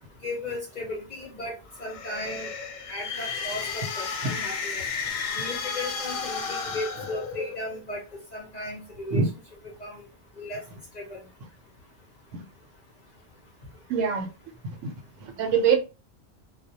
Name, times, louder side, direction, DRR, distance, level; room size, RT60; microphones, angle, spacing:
voice 1, 0.2-2.5 2.9-4.9 5.3-8.0 8.3-9.2 9.8-10.0 10.4-10.6 10.9-11.2, left 2 dB, 45° left, 0.6 m, -35 dB
sound 1, 1.7-7.8, left 5 dB, 85° left, 1.0 m, -33 dB
voice 2, 13.9-14.3 14.8-14.9 15.2-15.8, right 6 dB, 85° right, 0.9 m, -24 dB
2.2 x 2.0 x 2.7 m
omnidirectional pair, 1.3 m